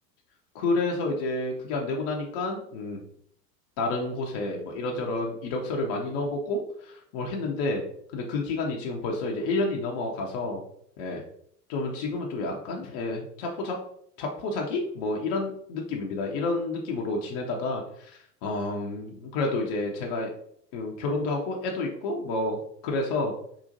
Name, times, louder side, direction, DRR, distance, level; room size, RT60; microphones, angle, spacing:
voice 1, 0.5-3.0 3.8-7.8 8.1-10.6 11.0-11.2 11.7-13.8 14.2-20.3 20.7-23.3, left 2 dB, 30° left, 0 dB, 0.4 m, -30 dB
3.7 x 2.4 x 2.5 m, 0.66 s
figure-of-eight pair, 80°, 49 cm